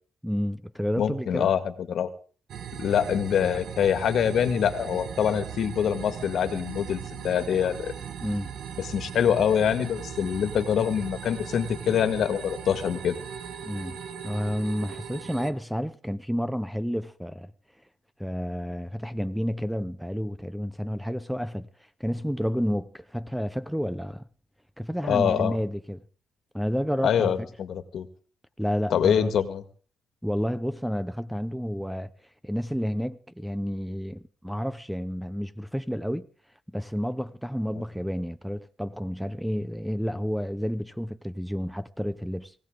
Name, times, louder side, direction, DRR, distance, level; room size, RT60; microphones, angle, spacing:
voice 1, 0.2-1.5 8.2-8.5 13.6-17.5 18.2-21.7 22.0-24.2 24.8-26.0 26.5-27.3 28.6-29.3 30.2-32.1 32.4-36.3 36.7-42.5, equal, ahead, 0.7 m, -30 dB
voice 2, 1.0-2.1 2.8-7.9 8.8-13.2 25.0-25.6 27.0-28.1 28.9-29.6, left 8 dB, 65° left, 1.8 m, -25 dB
sound 1, 2.5-15.5, right 8 dB, 70° right, 1.5 m, -39 dB
20.0 x 16.5 x 3.8 m
cardioid pair, 90°, 0 cm